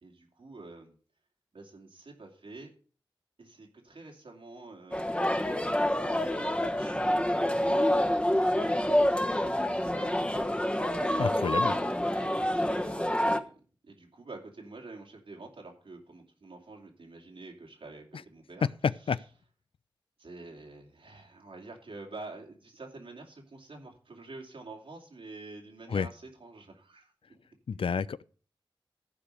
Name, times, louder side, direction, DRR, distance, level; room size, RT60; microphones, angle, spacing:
voice 1, 0.0-1.0 1.5-2.7 3.4-5.5 6.2-9.1 9.4-10.1 11.4-11.5 12.0-13.5 13.8-18.7 20.2-27.1, right 3 dB, 85° right, 2.9 m, -48 dB
sound 1, 4.9-13.4, left 1 dB, 15° left, 1.1 m, -27 dB
voice 2, 11.2-11.7 18.8-19.2 25.9-26.1 27.7-28.2, left 6 dB, 85° left, 0.4 m, -29 dB
14.5 x 5.0 x 6.6 m
cardioid pair, 45°, 9 cm